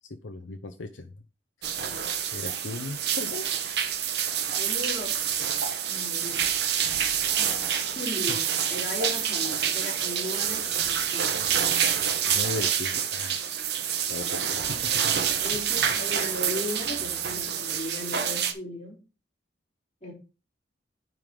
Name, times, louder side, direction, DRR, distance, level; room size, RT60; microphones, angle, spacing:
voice 1, 0.2-1.1 1.6-2.0 2.3-3.5 12.3-13.5 14.1-15.5 15.8-16.0, left 2 dB, 90° left, 5 dB, 0.8 m, -37 dB
sound 1, 1.6-18.5, right 8 dB, 60° right, 1.0 m, -27 dB
voice 2, 4.6-5.5 5.8-6.4 6.7-6.9 7.4-11.4 14.2-14.8 15.4-19.0 20.0-20.1, left 1 dB, 40° left, -3 dB, 3.7 m, -37 dB
9.5 x 3.9 x 5.1 m, 0.33 s
head